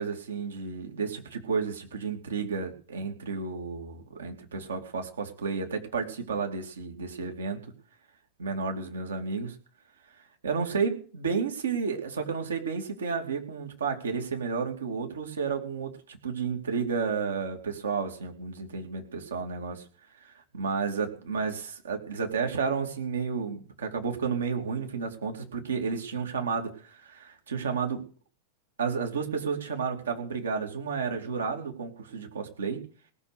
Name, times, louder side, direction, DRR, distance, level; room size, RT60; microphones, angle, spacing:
voice 1, 0.0-7.6 8.4-9.5 10.4-19.8 20.2-28.0 28.8-32.8, right 5 dB, 70° right, 3 dB, 2.7 m, -32 dB
18.5 x 6.3 x 8.1 m, 0.39 s
figure-of-eight pair, 90°, 0 cm